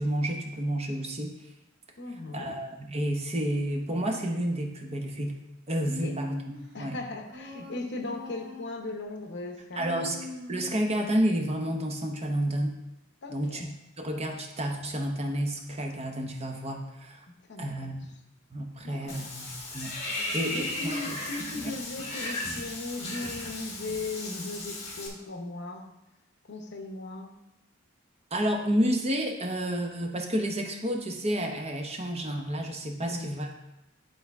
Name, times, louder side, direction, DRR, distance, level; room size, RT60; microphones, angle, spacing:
voice 1, 0.0-1.4 2.3-5.4 5.7-6.4 6.8-7.0 9.7-10.2 10.5-12.8 13.3-13.7 14.0-17.2 17.6-18.1 18.5-21.2 21.6-21.7 28.3-33.5, right 1 dB, 30° right, 2 dB, 0.8 m, -30 dB
voice 2, 2.0-2.6 6.0-6.1 6.7-10.1 13.2-13.6 17.3-17.9 18.8-19.3 20.1-25.9 26.5-27.4 33.0-33.3, left 2 dB, 55° left, 4 dB, 0.8 m, -38 dB
Human voice, 5.8-6.8 7.3-8.9 9.7-11.0, left 2 dB, 55° right, 1.3 m, -42 dB
Water / Bathtub (filling or washing), 19.1-25.1, left 2 dB, 30° left, 1.4 m, -36 dB
10.5 x 3.9 x 3.5 m, 0.91 s
head